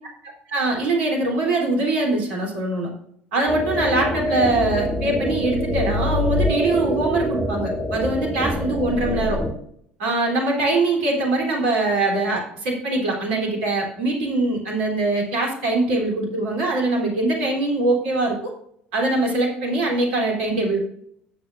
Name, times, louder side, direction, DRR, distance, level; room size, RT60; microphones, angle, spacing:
voice 1, 0.2-2.9 3.3-9.4 10.0-18.4 18.9-20.8, right 2 dB, 70° right, 0 dB, 3.2 m, -22 dB
sound 1, 3.5-9.5, left 1 dB, 5° right, 3.5 m, -25 dB
18.5 x 6.7 x 2.5 m, 0.69 s
figure-of-eight pair, 60°, 6 cm